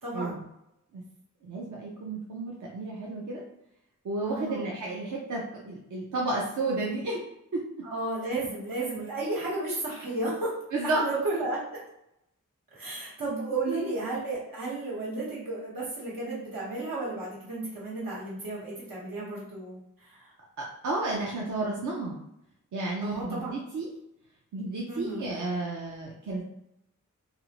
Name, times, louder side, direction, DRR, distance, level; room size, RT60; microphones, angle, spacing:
voice 1, 0.0-0.4 4.3-4.7 7.8-10.5 10.9-11.8 12.7-20.3 23.0-23.5 24.9-25.3, right 2 dB, 90° right, -7 dB, 1.2 m, -33 dB
voice 2, 1.4-3.4 4.0-7.2 7.5-7.6 10.7-11.0 12.9-13.0 13.7-13.8 20.6-22.2 22.7-23.9 24.5-26.4, right 2 dB, 65° right, -3 dB, 0.5 m, -32 dB
2.5 x 2.0 x 2.9 m, 0.83 s
wide cardioid pair, 60°, 33 cm